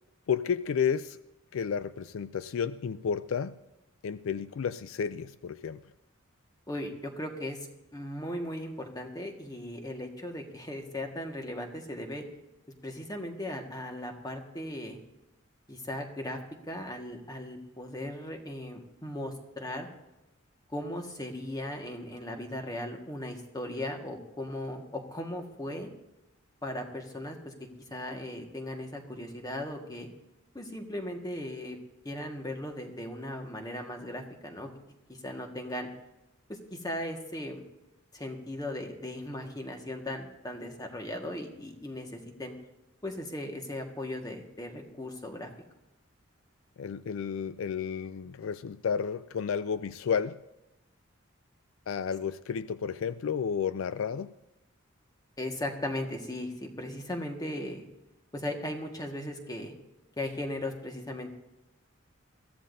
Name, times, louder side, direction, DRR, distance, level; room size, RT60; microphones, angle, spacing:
voice 1, 0.3-1.2 1.5-3.6 4.0-5.8 46.8-50.4 51.9-54.3, left 7 dB, 70° left, 0.4 m, -31 dB
voice 2, 6.7-7.7 7.9-12.3 12.8-15.0 15.7-16.4 16.7-19.9 20.7-25.9 26.6-27.5 27.9-30.1 30.5-31.8 32.0-34.7 35.1-35.9 36.5-37.6 38.1-42.5 43.0-45.5 55.4-57.8 58.3-59.7 60.2-61.3, left 1 dB, 20° left, 1.6 m, -37 dB
22.0 x 14.5 x 2.7 m
head